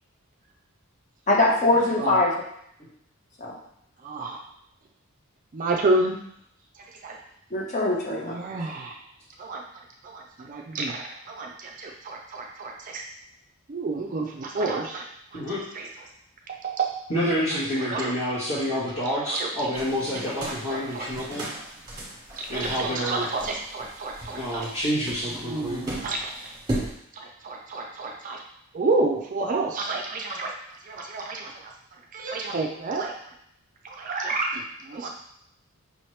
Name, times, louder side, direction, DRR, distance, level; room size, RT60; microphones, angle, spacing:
voice 1, 1.3-2.3 2.8-2.9 3.4-3.6 7.5-8.4, left 2 dB, 35° left, -2 dB, 0.8 m, -22 dB
voice 2, 5.5-6.2 8.3-9.0 9.4-9.6 10.0-13.0 13.7-15.1 15.3-15.4 15.7-15.9 16.5-17.0 17.9-18.1 19.3-19.5 20.4-21.3 22.4-24.7 25.4-26.3 27.1-28.4 28.7-30.5 30.9-31.7 32.1-33.1 33.8-35.1, right 3 dB, 35° right, 1 dB, 0.4 m, -29 dB
voice 3, 17.1-21.5 22.5-23.3 24.3-25.8, equal, 60° left, -12 dB, 1.3 m, -28 dB
sound 1, 19.7-26.9, right 1 dB, 20° right, 1.2 m, -37 dB
5.6 x 3.0 x 3.1 m, 0.73 s
head